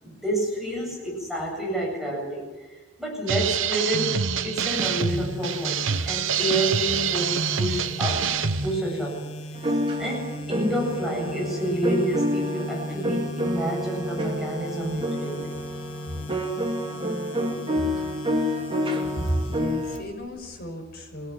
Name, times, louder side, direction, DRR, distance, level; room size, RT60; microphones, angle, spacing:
voice 1, 0.0-8.3 8.6-9.2 9.6-15.6 17.7-18.0, right 1 dB, ahead, -3 dB, 7.9 m, -29 dB
sound 1, 3.3-8.8, right 7 dB, 80° right, 1.0 m, -26 dB
sound 2, 4.6-20.6, equal, 75° left, 2.1 m, -38 dB
sound 3, 9.5-20.0, equal, 25° right, 3.2 m, -29 dB
voice 2, 19.1-21.3, right 1 dB, 50° left, 2 dB, 6.1 m, -32 dB
26.5 x 17.5 x 10.0 m, 1.3 s
head